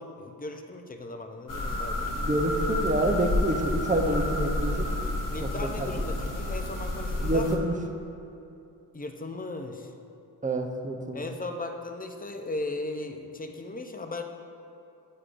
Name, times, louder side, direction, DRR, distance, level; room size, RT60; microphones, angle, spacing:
voice 1, 0.0-2.2 5.3-7.5 8.9-9.9 11.1-14.2, left 2 dB, 20° left, 5 dB, 0.6 m, -37 dB
sound 1, 1.5-7.6, left 1 dB, 50° left, 1.0 m, -30 dB
voice 2, 2.1-4.9 5.4-5.9 7.2-7.7 10.4-11.2, right 1 dB, 20° right, 3 dB, 0.7 m, -27 dB
8.3 x 4.8 x 2.5 m, 2.7 s
cardioid pair, 40°, 41 cm